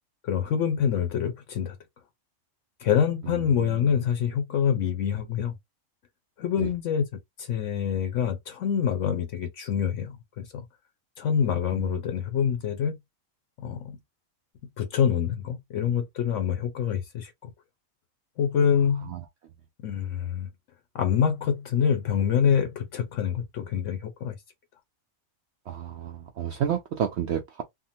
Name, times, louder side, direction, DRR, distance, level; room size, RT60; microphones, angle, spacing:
voice 1, 0.2-1.8 2.8-5.5 6.4-7.0 7.4-10.7 11.2-13.0 13.6-14.0 14.8-17.5 18.4-19.1 19.8-20.5 20.9-24.4, left 8 dB, 70° left, 0.9 m, -26 dB
voice 2, 3.2-3.9 6.6-6.7 11.7-12.0 19.1-19.2 25.7-27.6, right 9 dB, 65° right, 0.7 m, -31 dB
3.6 x 2.1 x 2.7 m
omnidirectional pair, 1.4 m